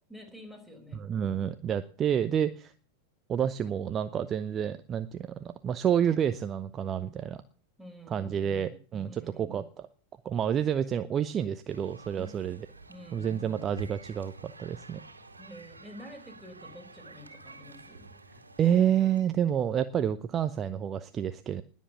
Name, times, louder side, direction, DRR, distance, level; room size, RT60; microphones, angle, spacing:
voice 1, 0.1-1.0 7.8-8.8 9.1-9.5 12.1-12.6 12.9-13.3 15.4-18.1, left 1 dB, 5° left, 4 dB, 4.9 m, -48 dB
voice 2, 0.9-2.7 3.3-7.4 8.1-9.9 10.2-12.7 13.1-15.0 18.6-21.6, right 9 dB, 25° right, 11 dB, 0.8 m, -29 dB
sound 1, 11.7-19.2, right 2 dB, 80° right, 2.1 m, -49 dB
20.0 x 7.5 x 7.0 m, 0.42 s
figure-of-eight pair, 90°, 0 cm